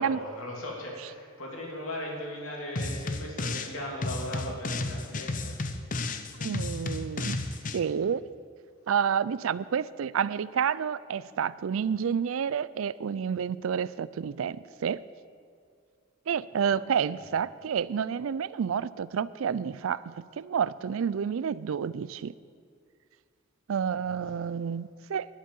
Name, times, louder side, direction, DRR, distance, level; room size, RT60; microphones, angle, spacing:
voice 1, 0.0-5.6 17.1-17.2 23.9-24.2, left 1 dB, 70° left, -2 dB, 3.0 m, -38 dB
sound 1, 2.8-3.7 4.0-7.8, left 2 dB, 40° left, 0.6 m, -33 dB
voice 2, 6.4-7.4 7.7-8.2 8.9-15.0 16.3-22.4 23.7-25.3, right 7 dB, 70° right, 18 dB, 0.4 m, -29 dB
11.5 x 8.2 x 9.2 m, 2.1 s
head